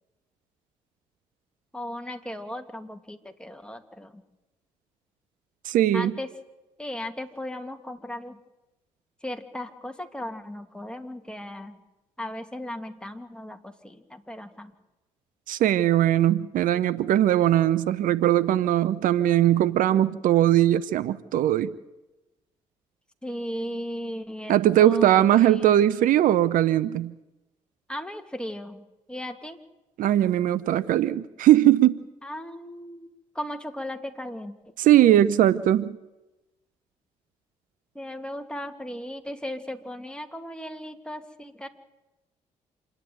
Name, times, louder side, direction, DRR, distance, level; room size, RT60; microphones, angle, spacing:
voice 1, 1.7-4.2 5.9-6.3 6.8-8.4 9.2-11.8 12.2-14.7 23.2-25.7 27.9-28.8 29.1-29.6 32.2-33.1 33.3-34.6 37.9-41.7, left 1 dB, 5° left, 5 dB, 2.5 m, -36 dB
voice 2, 5.6-6.1 15.5-21.7 24.5-27.1 30.0-32.0 34.8-35.9, right 12 dB, 65° right, 17 dB, 0.7 m, -20 dB
27.0 x 10.5 x 9.4 m, 1.0 s
hypercardioid pair, 50°, 15 cm